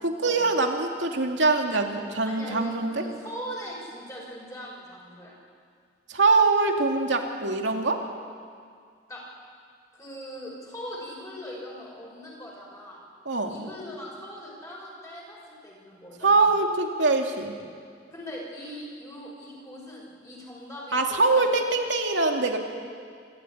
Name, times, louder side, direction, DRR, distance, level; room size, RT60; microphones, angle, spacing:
voice 1, 0.0-3.0 6.1-8.0 13.3-13.6 16.2-17.5 20.9-22.6, right 3 dB, 80° right, 2 dB, 2.5 m, -23 dB
voice 2, 2.3-5.4 9.1-9.2 9.9-13.0 13.5-16.5 18.1-21.5, equal, 15° left, -3 dB, 5.9 m, -40 dB
27.0 x 13.5 x 10.0 m, 2.1 s
head